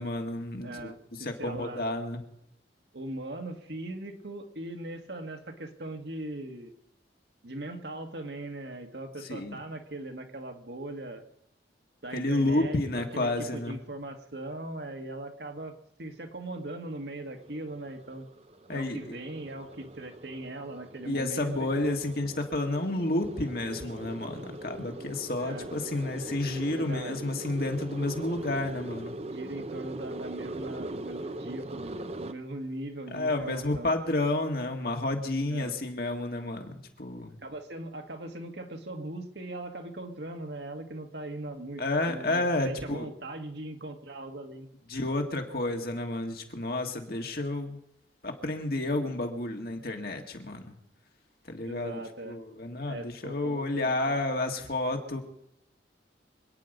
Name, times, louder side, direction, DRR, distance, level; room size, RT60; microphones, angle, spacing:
voice 1, 0.0-2.2 9.3-9.6 12.1-13.8 18.7-19.2 21.0-29.1 33.1-37.4 41.8-43.1 44.9-47.8 48.2-50.8 51.5-55.2, left 2 dB, 55° left, 3 dB, 2.0 m, -31 dB
voice 2, 0.6-1.9 2.9-6.7 7.4-11.2 12.0-15.7 16.0-18.3 18.7-22.0 25.4-25.7 26.7-27.2 29.2-33.9 35.5-35.7 37.4-44.7 51.6-52.4 52.9-54.2, right 1 dB, 70° right, 4 dB, 1.8 m, -40 dB
sound 1, 16.8-32.3, right 1 dB, 35° right, 0.7 m, -41 dB
26.5 x 9.6 x 5.3 m, 0.78 s
head